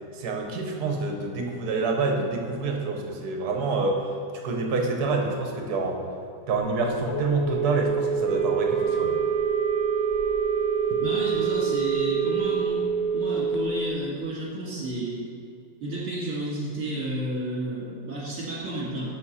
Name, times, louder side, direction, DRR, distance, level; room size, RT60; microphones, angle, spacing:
voice 1, 0.2-4.0 4.4-6.0 6.5-9.1 10.9-11.0, right 3 dB, 65° right, 2 dB, 1.3 m, -27 dB
Telephone, 6.5-13.9, right 5 dB, 65° left, 1.1 m, -27 dB
Wind instrument woodwind instrument, 8.2-12.7, right 12 dB, 85° right, 1.2 m, -30 dB
voice 2, 11.0-12.8 13.1-15.2 15.8-19.1, right 2 dB, 35° right, -8 dB, 2.2 m, -31 dB
6.9 x 6.6 x 4.2 m, 2.5 s
omnidirectional pair, 1.9 m